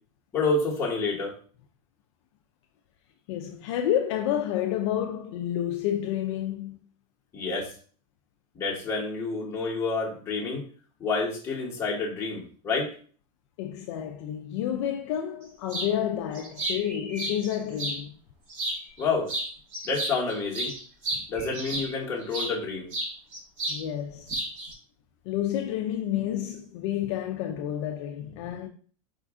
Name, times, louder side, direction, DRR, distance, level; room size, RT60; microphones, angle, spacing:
voice 1, 0.3-1.3 7.3-7.7 8.5-10.6 11.0-12.9 19.0-19.3 19.8-20.7 21.3-22.9, left 3 dB, 15° left, 1.1 m, -28 dB
voice 2, 3.3-6.8 13.6-18.2 21.1-21.2 23.7-24.3 25.3-28.7, left 10 dB, 55° left, 0.4 m, -30 dB
sound 1, 15.7-15.9 16.3-18.0 18.5-19.0 19.3-22.5 22.9-23.8 24.1-24.7, right 1 dB, 75° right, 2.0 m, -33 dB
4.9 x 2.5 x 3.5 m
supercardioid pair, 175°, 17 cm